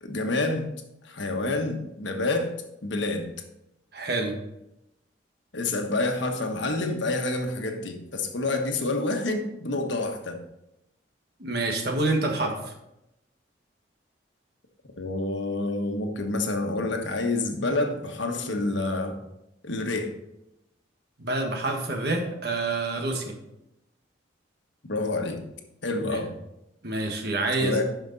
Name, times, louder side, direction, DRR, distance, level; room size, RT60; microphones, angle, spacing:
voice 1, 0.0-0.7 1.0-2.5 2.8-3.3 5.5-10.4 15.0-19.2 19.6-20.1 24.8-25.4 25.8-26.3 27.6-27.8, left 2 dB, 70° left, 4 dB, 1.3 m, -28 dB
voice 2, 3.9-4.3 11.4-12.7 21.2-23.3 26.1-26.2 26.8-27.8, right 2 dB, 55° right, 3 dB, 1.5 m, -27 dB
11.5 x 5.2 x 4.0 m, 0.87 s
head